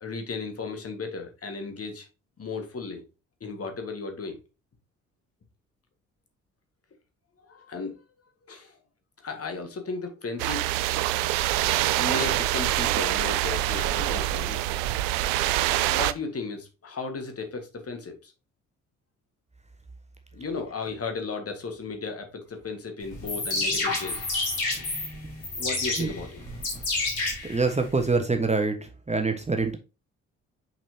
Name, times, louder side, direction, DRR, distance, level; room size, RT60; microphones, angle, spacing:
voice 1, 0.0-2.1 2.4-3.0 3.4-4.4 7.4-8.0 8.5-8.8 9.2-10.9 12.0-15.2 15.9-18.3 20.3-24.3 25.6-26.4, left 4 dB, 40° left, 5 dB, 1.8 m, -35 dB
sound 1, 10.4-16.1, right 15 dB, 70° right, 0.5 m, -25 dB
sound 2, 23.1-28.1, left 2 dB, 80° left, 3.0 m, -29 dB
voice 2, 27.4-29.8, right 3 dB, 15° right, 6 dB, 1.3 m, -25 dB
6.0 x 6.0 x 2.8 m, 0.29 s
hypercardioid pair, 45°, 38 cm